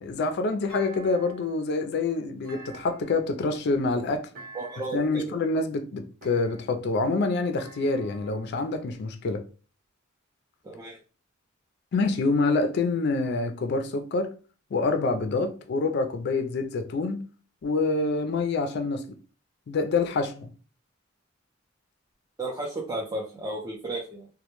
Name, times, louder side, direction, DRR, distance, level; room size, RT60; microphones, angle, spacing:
voice 1, 0.0-4.3 4.9-9.4 11.9-14.3 14.7-17.2 17.6-19.0 19.7-20.5, left 3 dB, 55° left, 0.4 m, -26 dB
Thump thud, 0.7-1.6 2.4-3.4 4.3-5.1 6.2-6.9 7.6-8.6, right 3 dB, 50° right, 0.7 m, -47 dB
voice 2, 4.5-5.3 10.6-11.0 22.4-24.3, right 2 dB, 20° right, 0.4 m, -33 dB
2.1 x 2.1 x 2.9 m
head